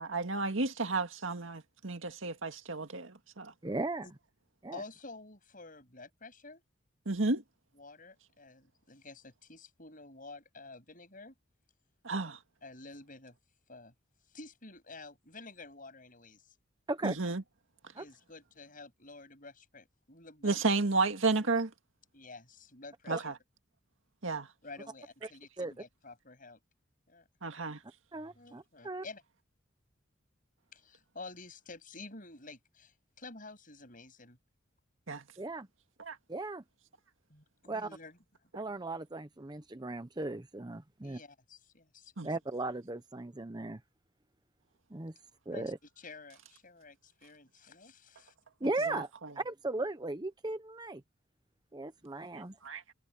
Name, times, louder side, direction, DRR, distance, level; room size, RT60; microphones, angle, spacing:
voice 1, 0.0-3.5 7.1-7.4 12.0-12.4 17.0-17.4 20.4-21.7 23.1-23.3 24.2-24.5 27.4-27.8 35.1-35.2 36.0-36.2 42.2-42.3 48.6-49.0 52.3-52.8, right 3 dB, 75° right, 2.0 m, -32 dB
voice 2, 3.6-4.0 4.6-4.8 16.9-17.2 18.0-18.1 23.1-23.2 25.6-25.7 28.1-29.0 35.4-35.7 36.3-36.6 37.7-37.9 38.5-41.2 42.2-43.8 44.9-45.1 45.5-45.8 48.6-49.1 49.4-51.0 51.7-52.6, right 2 dB, 20° right, 0.7 m, -37 dB
voice 3, 4.7-6.6 7.7-11.3 12.6-13.3 13.7-13.9 14.3-16.5 17.9-20.6 21.0-21.1 22.1-23.3 24.6-26.6 27.1-27.3 28.3-29.2 30.7-34.4 37.3-38.2 41.0-42.1 45.5-48.3, left 3 dB, 45° left, 8.0 m, -50 dB
head